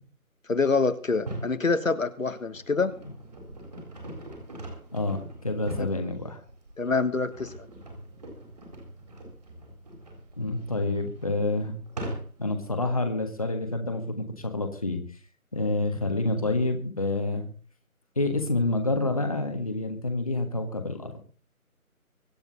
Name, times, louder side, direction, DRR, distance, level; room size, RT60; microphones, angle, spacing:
voice 1, 0.5-2.9 5.8-5.9 6.8-7.5, left 4 dB, 60° left, 11 dB, 1.5 m, -26 dB
sound 1, 1.1-1.6 2.2-12.6, right 1 dB, 25° right, 3.9 m, -41 dB
voice 2, 4.9-6.4 10.4-11.7 12.4-15.0 15.5-17.5 18.1-21.1, left 2 dB, 25° left, 5 dB, 1.5 m, -28 dB
24.0 x 8.8 x 4.0 m, 0.40 s
figure-of-eight pair, 175°, 44 cm